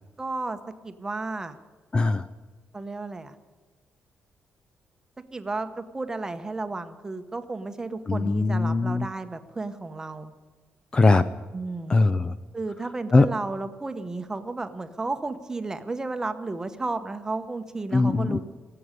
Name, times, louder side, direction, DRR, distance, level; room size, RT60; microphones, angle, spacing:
voice 1, 0.2-0.6 0.8-1.6 2.7-3.3 5.3-10.3 11.5-11.9 12.5-18.4, right 3 dB, 15° right, 9 dB, 0.9 m, -33 dB
voice 2, 1.9-2.2 8.1-9.1 10.9-11.2 11.9-12.3 13.1-13.3 17.9-18.4, left 3 dB, 25° left, 13 dB, 0.4 m, -20 dB
18.0 x 7.8 x 9.9 m, 1.4 s
cardioid pair, 155°, 4 cm